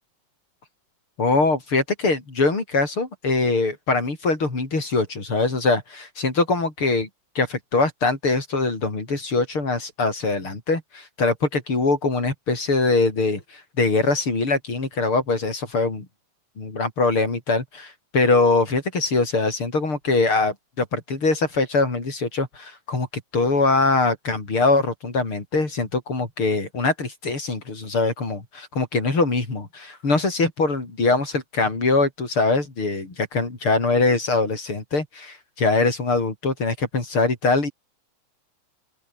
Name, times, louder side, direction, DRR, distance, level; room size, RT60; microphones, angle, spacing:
voice 1, 1.2-7.1 7.4-16.1 16.6-23.1 23.3-37.7, left 3 dB, 40° left, 6.1 m, -22 dB
open air
omnidirectional pair, 3.6 m